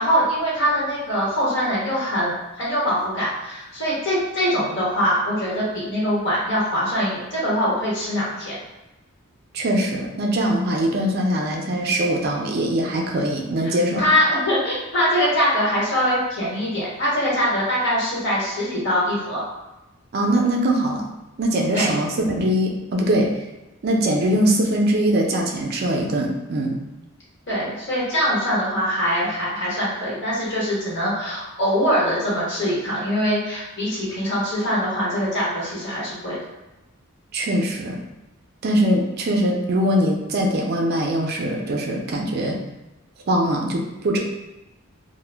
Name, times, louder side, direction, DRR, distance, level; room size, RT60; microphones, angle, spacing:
voice 1, 0.0-8.6 13.6-19.4 21.7-21.9 27.5-36.4, equal, 55° left, -6 dB, 1.1 m, -23 dB
voice 2, 9.5-14.1 20.1-21.1 21.4-23.3 23.8-26.8 37.3-38.0 38.6-42.6 43.3-44.2, right 1 dB, 50° right, 1 dB, 0.4 m, -22 dB
2.1 x 2.0 x 3.2 m, 1.0 s
head